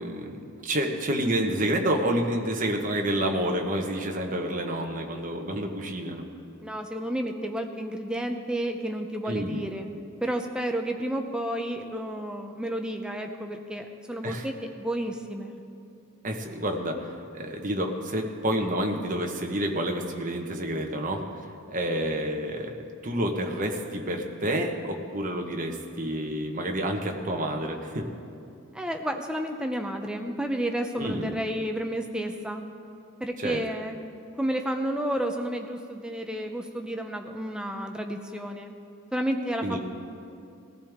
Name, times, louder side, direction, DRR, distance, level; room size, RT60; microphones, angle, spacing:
voice 1, 0.0-6.2 9.2-9.7 14.2-14.5 16.2-22.8 23.0-28.1 31.0-31.4 33.4-33.6 39.6-39.8, right 1 dB, 35° right, 2 dB, 1.2 m, -29 dB
voice 2, 6.6-9.9 10.2-15.6 28.7-32.6 33.2-34.0 34.4-38.7 39.1-39.8, right 1 dB, 5° right, 4 dB, 0.6 m, -31 dB
19.5 x 14.5 x 3.6 m, 2.5 s
head